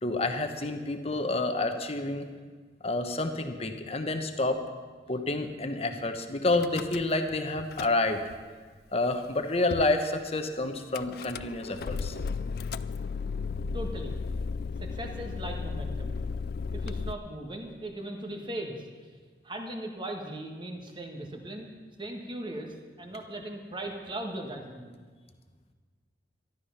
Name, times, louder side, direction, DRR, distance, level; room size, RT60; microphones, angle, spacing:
voice 1, 0.0-2.2 2.8-4.6 5.1-8.2 8.9-12.1, left 2 dB, 35° left, 7 dB, 1.1 m, -29 dB
Car / Engine starting / Idling, 6.5-7.3 7.6-8.4 9.0-9.1 9.3-9.4 9.7-10.0 10.9-17.1, left 4 dB, 60° left, 0.4 m, -34 dB
voice 2, 13.7-14.1 14.8-16.2 16.7-19.1 19.4-21.7 22.0-24.9, right 1 dB, 25° right, 2 dB, 1.7 m, -38 dB
13.0 x 12.0 x 5.8 m, 1.5 s
head